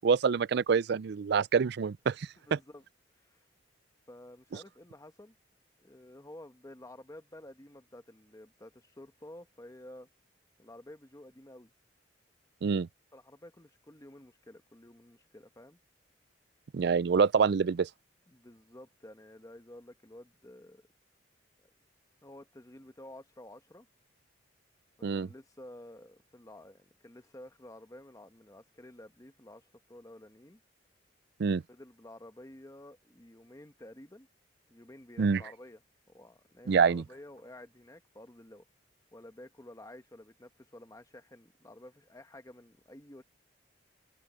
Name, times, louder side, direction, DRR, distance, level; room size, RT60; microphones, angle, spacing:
voice 1, 0.0-2.6 12.6-12.9 16.7-17.9 25.0-25.3 31.4-31.6 35.2-35.4 36.7-37.0, right 5 dB, 60° right, 0.4 m, -26 dB
voice 2, 2.5-2.8 3.1-3.5 4.1-5.3 5.8-10.1 10.6-11.7 13.1-15.8 18.3-20.8 21.6-21.7 22.2-23.9 25.1-30.6 31.7-34.3 34.7-35.8 36.1-38.6 39.1-43.2, left 1 dB, 20° left, 1.0 m, -51 dB
head